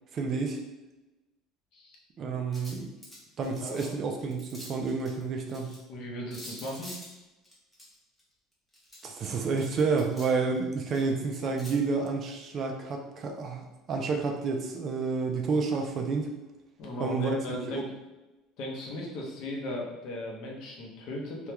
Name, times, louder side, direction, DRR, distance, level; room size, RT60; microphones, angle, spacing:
voice 1, 0.1-0.6 2.2-2.9 3.4-5.8 9.0-16.3 17.0-17.8, right 4 dB, 35° right, 2 dB, 0.4 m, -30 dB
sound 1, 2.5-3.9 4.2-5.8 6.3-8.2 8.7-10.3 10.5-11.7, left 1 dB, 10° left, 0.8 m, -47 dB
voice 2, 3.5-3.9 5.9-6.9 16.8-17.9 18.6-21.5, left 1 dB, 55° left, -1 dB, 0.7 m, -37 dB
3.4 x 2.3 x 2.9 m, 1.0 s
cardioid pair, 160°, 0 cm